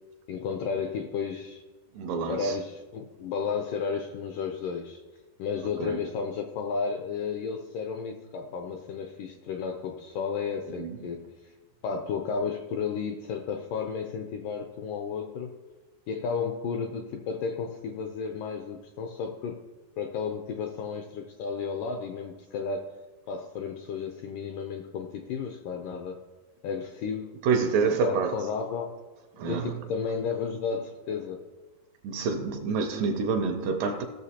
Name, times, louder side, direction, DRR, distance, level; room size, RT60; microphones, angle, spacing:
voice 1, 0.3-1.6 2.2-5.0 5.4-11.5 11.8-15.6 16.1-19.6 20.0-22.9 23.3-26.2 26.6-27.3 27.8-28.9 29.5-31.4, left 5 dB, 80° left, 1.9 m, -33 dB
voice 2, 1.9-2.6 5.8-6.0 10.8-11.0 27.4-28.5 29.3-29.8 32.0-34.0, right 5 dB, 80° right, 2.0 m, -27 dB
17.5 x 6.4 x 2.8 m
omnidirectional pair, 4.4 m